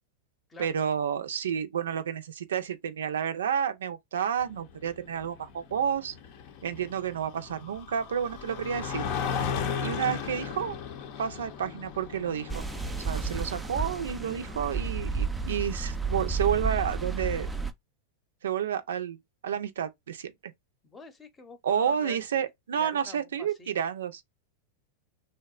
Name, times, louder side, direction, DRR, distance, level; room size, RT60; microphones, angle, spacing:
voice 1, 0.6-6.1 6.6-9.1 9.8-10.8 11.2-12.7 13.0-17.5 18.4-19.2 19.4-20.5 21.6-24.2, right 8 dB, 85° right, 0.4 m, -30 dB
sound 1, 4.4-15.0, left 7 dB, 55° left, 0.6 m, -37 dB
sound 2, 12.5-17.7, right 4 dB, 10° right, 0.4 m, -32 dB
voice 2, 20.8-22.2 22.7-23.7, left 4 dB, 20° left, 0.7 m, -47 dB
2.8 x 2.1 x 2.3 m
hypercardioid pair, 110°, 0 cm